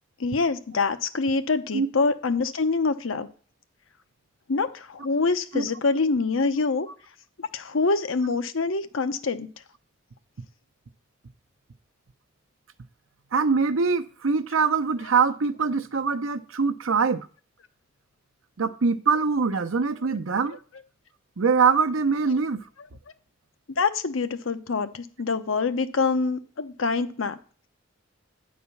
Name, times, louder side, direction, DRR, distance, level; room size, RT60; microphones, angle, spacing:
voice 1, 0.2-3.3 4.5-6.9 7.5-9.5 23.8-27.4, left 4 dB, 85° left, 0.8 m, -25 dB
voice 2, 13.3-17.3 18.6-20.6 21.4-22.6, right 5 dB, 90° right, 0.7 m, -23 dB
9.5 x 4.3 x 7.1 m
head